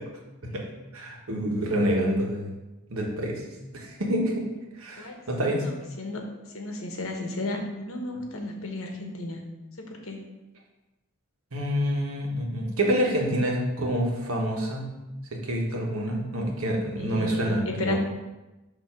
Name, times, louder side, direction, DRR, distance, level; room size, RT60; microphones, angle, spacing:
voice 1, 0.9-2.5 2.9-3.4 3.7-4.5 4.8-5.6 11.5-14.9 15.3-18.0, equal, 80° right, 0 dB, 1.3 m, -27 dB
voice 2, 5.4-9.4 9.8-10.2 17.0-18.0, left 2 dB, 70° left, 2 dB, 1.1 m, -34 dB
6.9 x 2.8 x 5.8 m, 1.1 s
head